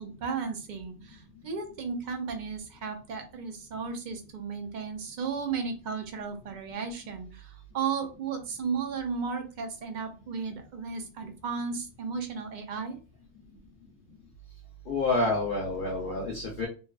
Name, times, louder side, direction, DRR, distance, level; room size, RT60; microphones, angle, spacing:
voice 1, 0.0-13.0, right 5 dB, 55° right, 5 dB, 0.6 m, -34 dB
voice 2, 14.9-16.7, left 2 dB, 55° left, -2 dB, 0.7 m, -28 dB
2.7 x 2.3 x 2.3 m, 0.35 s
omnidirectional pair, 1.2 m